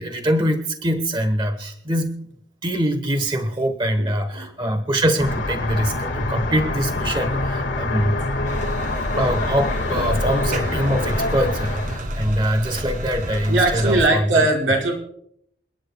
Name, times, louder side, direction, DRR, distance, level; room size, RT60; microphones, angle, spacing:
voice 1, 0.0-2.3 2.6-8.2 9.1-14.4, equal, 25° right, 6 dB, 1.1 m, -23 dB
voice 2, 4.0-4.5 7.3-7.4 8.4-8.7 9.9-10.1 12.8-12.9 13.5-15.0, right 2 dB, 80° right, -1 dB, 5.1 m, -21 dB
sound 1, 5.2-12.0, left 2 dB, 75° left, 1.8 m, -25 dB
sound 2, 8.4-14.1, equal, 45° right, 2.0 m, -30 dB
29.0 x 10.5 x 2.3 m, 0.72 s
head